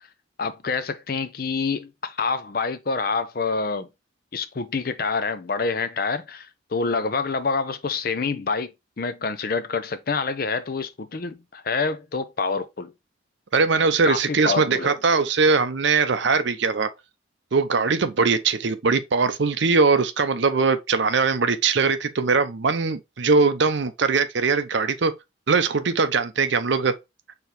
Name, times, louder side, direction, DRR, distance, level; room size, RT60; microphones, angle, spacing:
voice 1, 0.4-3.9 4.3-8.7 9.0-12.9 14.0-15.0, left 4 dB, 50° left, 0.5 m, -27 dB
voice 2, 13.5-16.9 17.5-25.1 25.5-26.9, right 4 dB, 65° right, 0.6 m, -21 dB
4.6 x 3.5 x 3.3 m
head